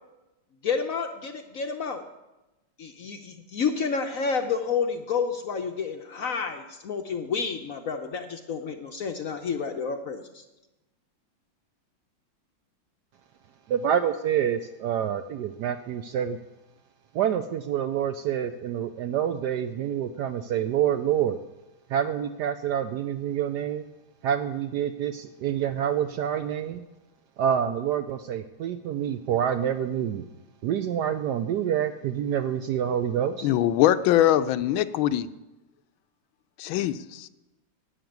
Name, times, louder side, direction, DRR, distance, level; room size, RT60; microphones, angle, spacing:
voice 1, 0.6-2.0 2.8-10.4, left 5 dB, 60° left, 5 dB, 0.9 m, -30 dB
voice 2, 13.7-16.4 17.1-21.4 21.9-23.8 24.2-26.8 27.4-30.2 30.6-33.5, right 9 dB, 75° right, 9 dB, 1.0 m, -27 dB
voice 3, 33.4-35.3 36.6-37.3, left 12 dB, 80° left, 12 dB, 1.4 m, -22 dB
12.0 x 6.6 x 9.4 m, 1.0 s
omnidirectional pair, 2.2 m